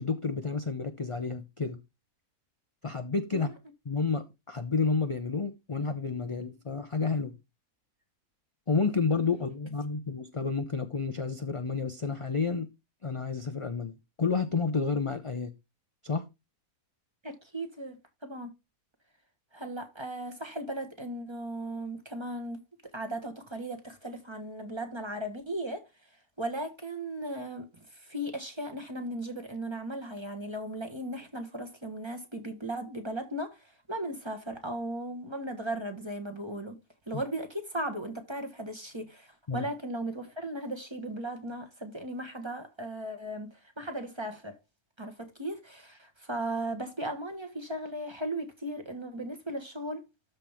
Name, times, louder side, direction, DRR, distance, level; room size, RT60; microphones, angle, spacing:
voice 1, 0.0-1.8 2.8-3.5 3.9-7.3 8.7-12.7 13.0-15.5 16.0-16.2 37.1-37.2 39.5-39.7, left 4 dB, 35° left, 0.5 m, -30 dB
voice 2, 17.2-18.0 18.2-18.5 19.5-22.6 22.9-25.8 26.4-36.8 37.1-44.6 45.0-50.0, right 1 dB, 20° right, 1.5 m, -37 dB
13.0 x 4.4 x 3.5 m
omnidirectional pair, 1.5 m